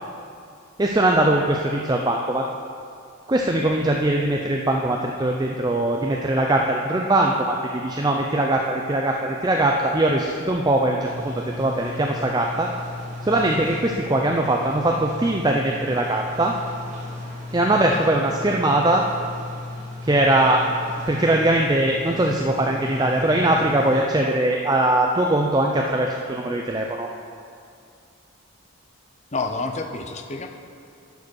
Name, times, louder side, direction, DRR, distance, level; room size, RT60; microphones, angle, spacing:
voice 1, 0.8-2.5 3.3-12.7 13.2-16.5 17.5-19.0 20.0-20.6 21.1-27.1, right 1 dB, 20° right, 1 dB, 0.4 m, -21 dB
sound 1, 11.0-24.0, left 2 dB, 35° right, 1.4 m, -36 dB
voice 2, 29.3-30.5, left 3 dB, 30° left, 4 dB, 0.6 m, -28 dB
11.5 x 4.9 x 6.3 m, 2.3 s
head